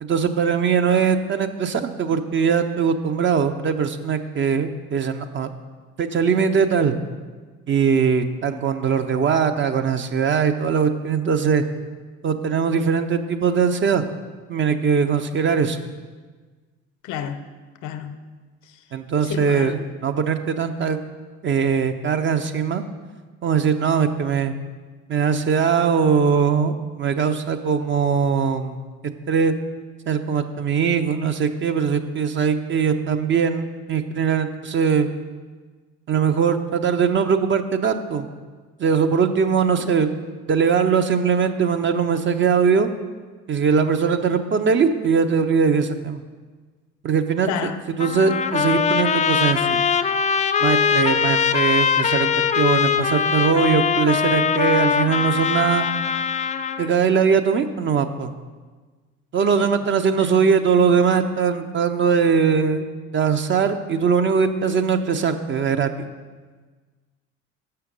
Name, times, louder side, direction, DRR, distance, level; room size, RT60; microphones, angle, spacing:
voice 1, 0.0-5.5 6.0-7.0 7.7-11.6 12.2-14.1 14.5-15.8 18.9-21.0 21.4-22.8 23.4-24.5 25.1-28.9 29.3-29.5 30.1-35.1 36.1-38.3 38.8-40.1 40.5-42.9 43.5-46.2 47.0-47.5 48.0-49.8 50.6-52.3 52.6-55.9 56.8-58.3 59.3-62.8 63.1-66.0, right 6 dB, 35° right, 8 dB, 0.6 m, -21 dB
voice 2, 17.0-17.4 17.8-18.2 18.7-18.8 19.2-19.8 39.8-40.0 47.4-47.8 59.6-59.7 60.1-60.4, left 9 dB, 55° left, 10 dB, 0.7 m, -31 dB
Trumpet, 48.0-56.9, left 7 dB, 20° left, 0.3 m, -21 dB
6.4 x 5.7 x 5.1 m, 1.4 s
hypercardioid pair, 55°, 35 cm